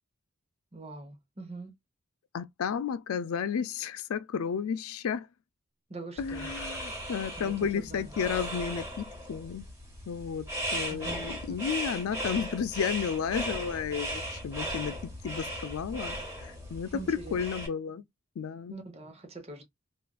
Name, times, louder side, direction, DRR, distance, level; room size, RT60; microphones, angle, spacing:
voice 1, 0.7-1.7 5.9-6.5 7.4-8.1 10.9-11.6 16.9-17.3 18.7-19.6, right 3 dB, 30° right, 0.8 m, -43 dB
voice 2, 2.3-5.3 6.2-9.7 10.1-18.0 18.4-18.8, left 7 dB, 85° left, 0.4 m, -33 dB
sound 1, 6.2-17.7, equal, 15° right, 1.2 m, -37 dB
3.6 x 2.4 x 2.3 m
head